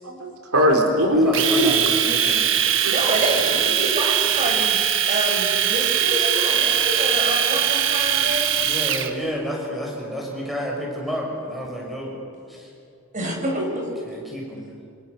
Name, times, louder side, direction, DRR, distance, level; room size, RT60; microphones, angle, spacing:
voice 1, 0.0-1.9 2.3-2.4 2.8-3.0, equal, 85° right, 2 dB, 4.0 m, -20 dB
voice 2, 1.1-2.6 7.5-7.7 8.1-12.2 12.5-12.7 14.0-14.8, equal, ahead, -2 dB, 6.2 m, -31 dB
Domestic sounds home sounds, 1.3-9.1, right 9 dB, 60° right, 1.6 m, -21 dB
voice 3, 2.8-4.8 5.1-8.7 13.1-13.9, right 1 dB, 35° right, 1 dB, 6.2 m, -27 dB
27.0 x 27.0 x 6.8 m, 2.4 s
head